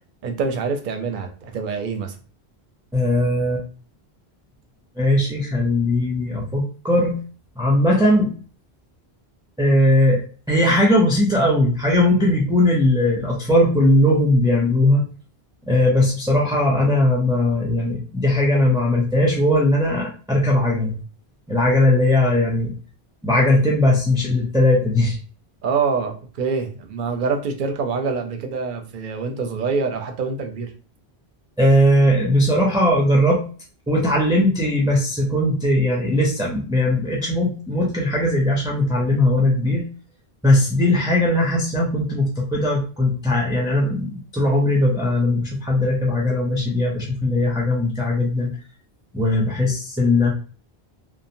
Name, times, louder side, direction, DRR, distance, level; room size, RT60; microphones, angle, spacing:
voice 1, 0.2-2.1 25.6-30.7, right 5 dB, 60° right, 5 dB, 0.6 m, -25 dB
voice 2, 2.9-3.7 5.0-7.2 7.6-8.3 9.6-15.0 15.7-21.0 21.5-22.7 23.2-25.2 31.6-33.4 33.9-39.8 40.4-48.5 49.1-50.3, left 1 dB, 5° right, -4 dB, 0.3 m, -19 dB
2.8 x 2.1 x 2.5 m, 0.39 s
omnidirectional pair, 1.1 m